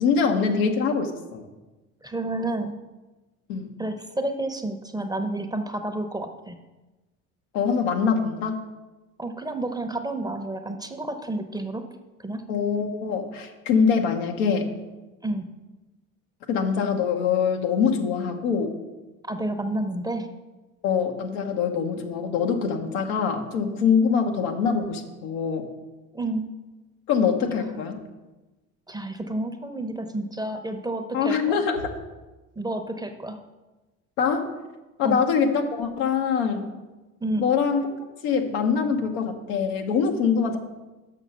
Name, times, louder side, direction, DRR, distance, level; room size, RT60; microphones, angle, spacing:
voice 1, 0.0-1.4 3.5-3.7 7.5-8.6 12.5-14.7 16.5-18.7 20.8-25.7 27.1-28.0 31.1-31.9 34.2-34.5 35.0-36.7 37.4-37.8 38.2-40.6, left 6 dB, 80° left, 4 dB, 1.1 m, -24 dB
voice 2, 2.0-2.7 3.8-6.6 9.2-11.9 12.2-12.4 15.2-15.5 19.3-20.3 26.1-26.5 28.9-31.5 32.6-33.4 35.0-35.2 37.2-37.5, right 2 dB, 10° right, 6 dB, 0.8 m, -30 dB
6.5 x 6.3 x 5.5 m, 1.1 s
hypercardioid pair, 60°, 43 cm